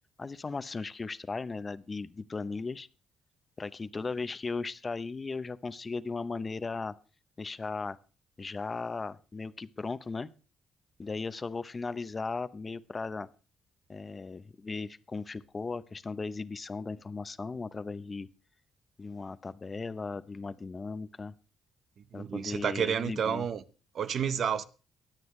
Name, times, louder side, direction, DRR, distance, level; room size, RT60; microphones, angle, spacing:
voice 1, 0.2-2.9 3.6-6.9 7.4-8.0 8.4-10.3 11.0-13.3 13.9-18.3 19.0-21.3 22.1-23.5, left 4 dB, 30° left, 0.8 m, -37 dB
voice 2, 22.1-23.6 23.9-24.6, right 7 dB, 60° right, 1.0 m, -30 dB
23.5 x 9.2 x 3.2 m
cardioid pair, 90°, 0 cm